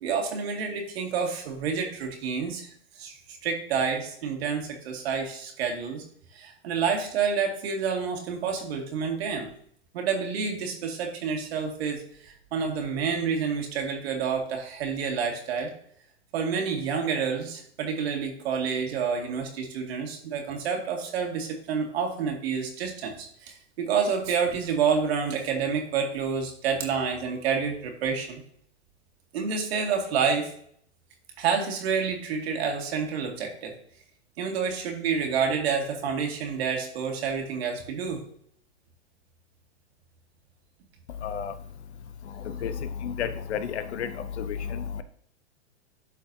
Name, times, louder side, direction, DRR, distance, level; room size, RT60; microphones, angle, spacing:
voice 1, 0.0-2.7 3.0-3.1 3.4-6.0 6.3-9.5 9.9-15.7 16.3-28.4 29.3-30.5 31.4-33.7 34.4-38.2, right 6 dB, 65° right, 2 dB, 2.2 m, -28 dB
voice 2, 41.2-41.5 42.4-42.7 43.0-45.0, left 7 dB, 75° left, 11 dB, 1.0 m, -32 dB
12.0 x 4.6 x 2.7 m, 0.63 s
hypercardioid pair, 120°, 33 cm